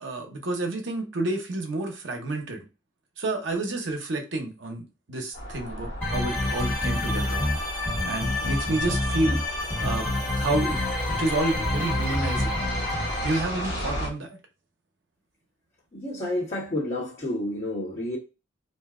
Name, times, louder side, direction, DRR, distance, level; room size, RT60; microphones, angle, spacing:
voice 1, 0.0-2.7 3.2-7.4 8.0-10.1 10.4-10.8 11.1-12.5 13.2-14.4, right 2 dB, 75° right, 0.9 m, -29 dB
sound 1, 5.3-14.1, equal, 60° left, 1.3 m, -35 dB
sound 2, 6.0-13.4, left 1 dB, 10° left, 1.2 m, -28 dB
voice 2, 15.9-18.2, left 1 dB, 30° left, 1.2 m, -30 dB
2.7 x 2.2 x 3.6 m
head